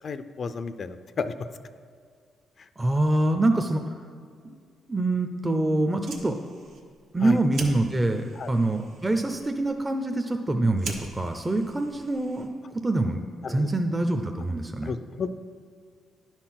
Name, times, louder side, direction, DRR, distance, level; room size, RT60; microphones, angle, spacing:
voice 1, 0.0-1.3 2.6-2.7 7.2-7.4 8.4-8.5 13.4-13.7 14.8-15.3, left 5 dB, 50° left, 11 dB, 0.4 m, -32 dB
voice 2, 2.8-3.9 4.4-4.5 4.9-6.4 7.1-13.2 13.5-14.9, right 2 dB, 20° right, 5 dB, 0.5 m, -25 dB
Fire, 5.9-12.7, right 3 dB, 80° right, 1.2 m, -44 dB
10.5 x 4.5 x 5.7 m, 2.1 s
cardioid pair, 85°, 0 cm